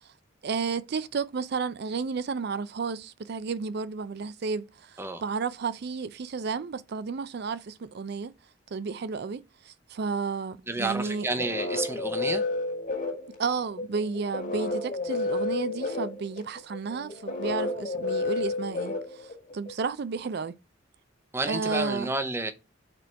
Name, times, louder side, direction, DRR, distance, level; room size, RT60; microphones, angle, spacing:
voice 1, 0.4-8.3 8.7-11.4 13.4-20.6 21.4-22.1, right 5 dB, 55° right, 0.4 m, -32 dB
voice 2, 10.7-12.4 21.3-22.5, right 2 dB, 15° right, 0.7 m, -30 dB
sound 1, 11.0-19.7, left 3 dB, 40° left, 1.9 m, -31 dB
5.2 x 4.3 x 4.5 m
head